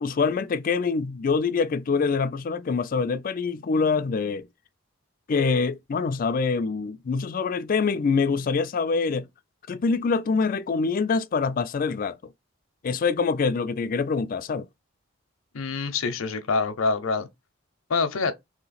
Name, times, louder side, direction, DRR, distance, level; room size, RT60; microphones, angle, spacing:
voice 1, 0.0-4.5 5.3-9.3 9.7-12.2 12.8-14.7, left 4 dB, 45° left, 0.3 m, -25 dB
voice 2, 15.5-17.3 17.9-18.3, left 4 dB, 85° left, 0.7 m, -25 dB
3.1 x 2.9 x 4.0 m
head